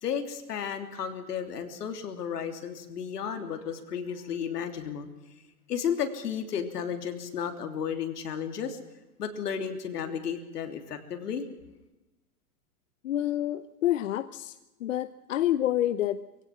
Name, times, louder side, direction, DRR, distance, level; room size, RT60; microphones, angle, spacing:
voice 1, 0.0-5.1 5.7-8.8 9.2-11.4, left 7 dB, 80° left, 6 dB, 3.3 m, -33 dB
voice 2, 13.0-14.5 14.8-16.2, left 12 dB, 55° left, 12 dB, 0.8 m, -28 dB
23.0 x 17.0 x 7.5 m, 1.0 s
hypercardioid pair, 165°, 46 cm